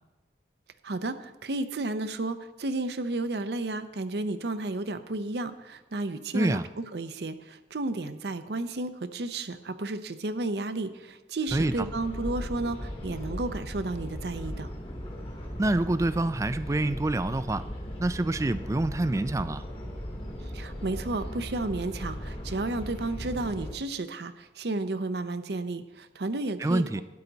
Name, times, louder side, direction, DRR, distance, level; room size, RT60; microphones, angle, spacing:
voice 1, 0.8-6.6 6.9-14.7 20.4-27.0, right 2 dB, 70° right, 10 dB, 0.7 m, -32 dB
voice 2, 6.3-6.7 11.5-11.9 15.6-17.6 18.0-19.7 26.6-27.0, right 2 dB, 15° right, 13 dB, 0.3 m, -26 dB
sound 1, 11.5-23.7, equal, 30° left, 1.5 m, -38 dB
12.5 x 9.7 x 4.0 m, 1.1 s
head